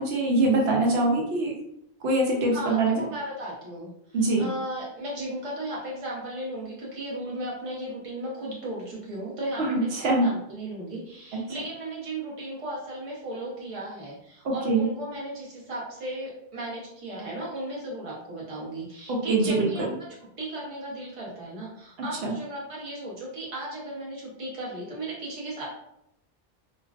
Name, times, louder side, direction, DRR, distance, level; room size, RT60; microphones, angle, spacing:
voice 1, 0.0-1.6 2.0-3.0 4.1-4.5 9.6-10.3 14.4-14.9 19.1-19.9 22.2-22.3, right 2 dB, 80° right, -1 dB, 0.8 m, -23 dB
voice 2, 2.5-3.9 4.4-19.9 20.4-25.7, right 1 dB, 35° right, -5 dB, 0.8 m, -36 dB
2.4 x 2.2 x 2.3 m, 0.77 s
omnidirectional pair, 1.0 m